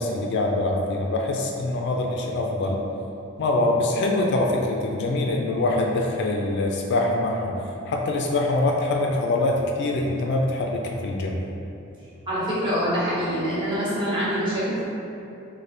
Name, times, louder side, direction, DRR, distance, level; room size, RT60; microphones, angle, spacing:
voice 1, 0.0-2.8 3.4-11.4, left 2 dB, 55° left, 0 dB, 0.3 m, -24 dB
voice 2, 12.3-14.8, equal, 25° right, -10 dB, 1.1 m, -25 dB
3.2 x 2.1 x 4.1 m, 2.7 s
head